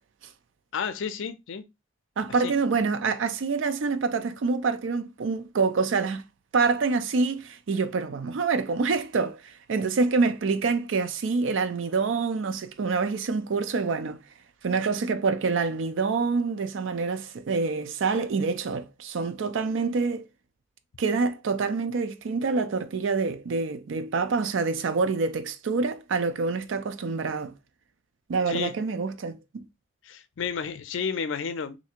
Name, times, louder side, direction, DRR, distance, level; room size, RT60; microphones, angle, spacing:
voice 1, 0.7-1.6 2.4-2.5 28.5-28.7 30.0-31.8, left 6 dB, 75° left, 0.5 m, -31 dB
voice 2, 2.2-6.2 6.5-14.2 14.6-20.3 21.0-27.5 28.3-29.6, right 4 dB, 75° right, 0.4 m, -26 dB
3.2 x 2.7 x 2.8 m
head